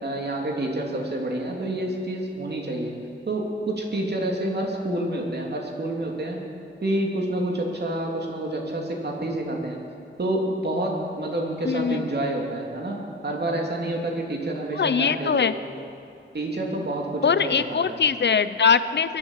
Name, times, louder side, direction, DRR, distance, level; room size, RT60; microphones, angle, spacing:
voice 1, 0.0-2.9 3.3-6.4 6.8-9.8 10.2-15.5 16.3-18.0, right 1 dB, 55° right, 0 dB, 2.9 m, -28 dB
voice 2, 11.6-12.0 14.7-15.5 17.2-19.2, left 6 dB, 60° left, 13 dB, 0.7 m, -22 dB
22.0 x 8.7 x 7.4 m, 2.6 s
wide cardioid pair, 75°, 21 cm